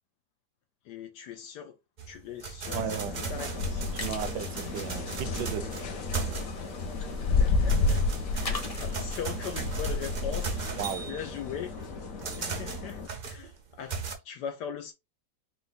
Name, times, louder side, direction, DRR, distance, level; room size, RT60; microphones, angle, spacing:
voice 1, 0.8-1.8 2.1-3.9 7.2-8.0 8.3-11.7 12.4-14.9, left 8 dB, 75° left, 1.2 m, -40 dB
sound 1, 2.0-6.8 7.2-14.1, right 5 dB, 60° right, 0.4 m, -37 dB
sound 2, 2.7-13.1, left 4 dB, 55° left, 1.0 m, -31 dB
voice 2, 2.7-3.1 3.9-5.6 10.8-11.1 12.2-12.6, right 8 dB, 75° right, 1.2 m, -35 dB
sound 3, 3.3-11.1, left 2 dB, 30° left, 0.8 m, -45 dB
4.6 x 2.2 x 4.0 m
omnidirectional pair, 1.9 m